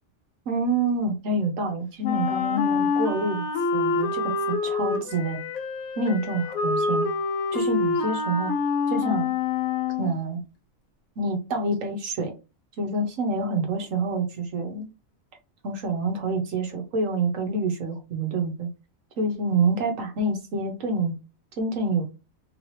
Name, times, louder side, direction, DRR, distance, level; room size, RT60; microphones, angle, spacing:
voice 1, 0.5-3.4 3.7-4.3 4.6-5.4 6.0-7.1 7.5-8.5 8.9-9.3 10.0-10.4 11.2-12.3 12.8-14.9 15.6-18.7 19.2-21.2 21.6-22.0, right 2 dB, 70° right, 1.4 m, -27 dB
Wind instrument woodwind instrument, 2.0-10.1, left 4 dB, 90° left, 1.2 m, -26 dB
3.7 x 2.8 x 3.2 m
omnidirectional pair, 1.4 m